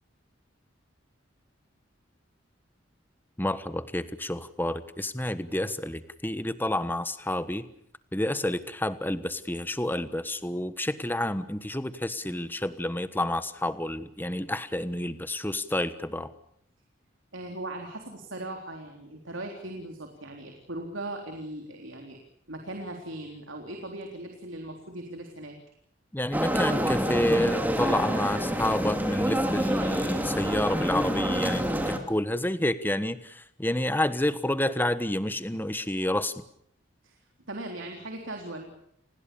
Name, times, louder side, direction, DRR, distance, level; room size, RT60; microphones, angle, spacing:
voice 1, 3.4-7.7 8.1-16.3 26.1-36.4, left 1 dB, 10° left, 13 dB, 1.3 m, -29 dB
voice 2, 17.3-22.2 22.5-25.6 37.0-37.2 37.5-38.7, right 1 dB, 75° right, 3 dB, 3.7 m, -39 dB
sound 1, 26.3-32.0, equal, 10° right, 2.9 m, -27 dB
30.0 x 20.5 x 7.0 m, 0.70 s
head